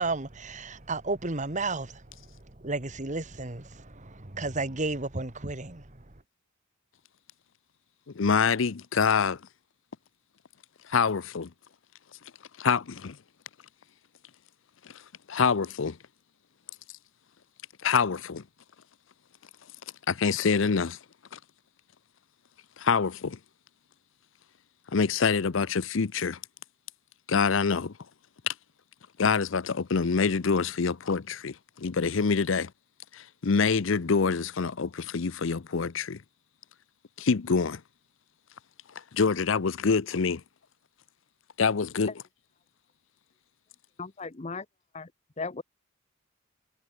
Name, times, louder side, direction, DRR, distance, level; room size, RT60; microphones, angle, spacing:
voice 1, 0.0-1.9 2.6-3.6 4.0-5.8, right 3 dB, 35° right, 1.8 m, -32 dB
voice 2, 8.1-9.4 10.9-11.5 12.6-13.2 15.3-16.0 17.8-18.4 20.1-21.0 21.3-21.4 22.8-23.4 24.9-26.4 27.3-27.9 28.5-28.6 29.2-32.7 33.1-36.2 37.2-37.8 39.1-40.4 41.6-42.2, left 5 dB, 65° left, 0.6 m, -26 dB
voice 3, 44.0-44.6 44.9-45.1 45.4-45.6, left 4 dB, 30° left, 0.8 m, -36 dB
head